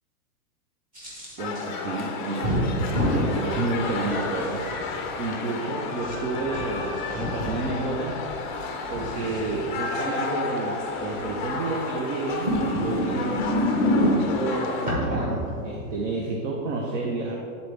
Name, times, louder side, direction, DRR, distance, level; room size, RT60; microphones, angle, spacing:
sound 1, 0.9-1.6 2.4-3.3 4.0-4.9 6.0-7.5 8.6-9.6 11.0-11.4 12.3-14.4 14.9-16.0, equal, 20° right, 1.2 m, -27 dB
sound 2, 1.4-15.0, left 4 dB, 35° left, 0.5 m, -32 dB
voice 1, 1.4-4.7 5.2-8.2 8.9-13.5 13.9-17.3, right 3 dB, 55° right, -1 dB, 0.9 m, -30 dB
9.5 x 4.1 x 3.3 m, 2.5 s
supercardioid pair, 160°, 46 cm